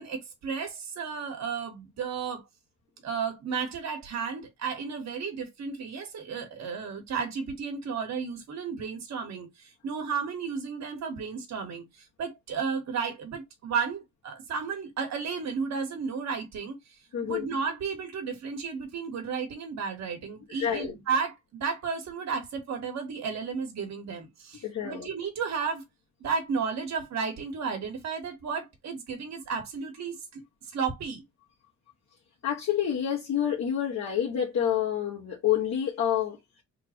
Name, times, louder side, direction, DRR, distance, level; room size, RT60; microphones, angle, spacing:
voice 1, 0.0-2.4 3.0-16.8 17.2-25.8 26.2-30.4 30.7-31.2, right 5 dB, 60° right, 1.4 m, -33 dB
voice 2, 17.1-17.5 20.6-20.9 24.6-25.1 32.4-36.4, left 9 dB, 60° left, 1.3 m, -28 dB
3.5 x 2.3 x 4.3 m
cardioid pair, 90°, 30 cm